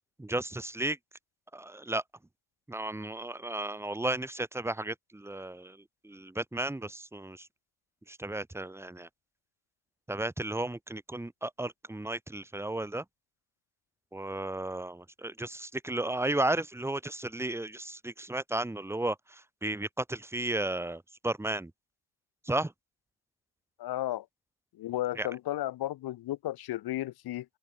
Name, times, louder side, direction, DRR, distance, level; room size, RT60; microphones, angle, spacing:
voice 1, 0.2-1.0 1.5-2.0 2.7-5.8 6.0-7.5 8.1-9.1 10.1-13.0 14.1-19.2 19.6-21.7 22.5-22.7 25.2-25.3, right 2 dB, 5° right, 1.2 m, -34 dB
voice 2, 23.8-24.3 24.8-27.5, left 14 dB, 65° left, 3.9 m, -33 dB
open air
supercardioid pair, 80°, 40 cm